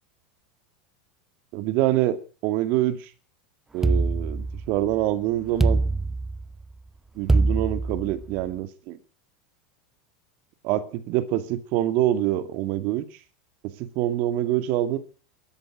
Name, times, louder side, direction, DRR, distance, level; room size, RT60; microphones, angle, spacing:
voice 1, 1.5-3.1 3.7-5.8 7.2-9.0 10.6-13.1 13.6-15.0, right 13 dB, 55° right, 11 dB, 2.2 m, -25 dB
sound 1, 3.8-4.9 5.6-6.6 7.3-8.4, right 3 dB, 10° right, 0.8 m, -23 dB
13.5 x 10.5 x 9.0 m, 0.39 s
hypercardioid pair, 100°, 4 cm